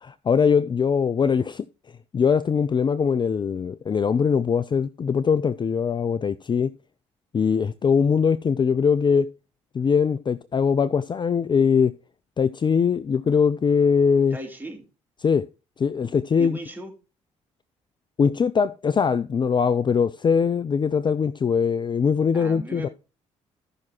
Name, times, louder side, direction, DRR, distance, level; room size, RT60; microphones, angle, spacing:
voice 1, 0.0-1.6 2.1-6.7 7.3-9.3 9.7-11.9 12.4-14.4 15.2-15.4 15.8-16.6 18.2-22.9, left 6 dB, 30° left, 0.5 m, -21 dB
voice 2, 14.3-14.8 16.4-16.9 22.3-22.9, right 2 dB, 10° right, 3.0 m, -36 dB
15.0 x 6.0 x 2.9 m
hypercardioid pair, 45°, 15 cm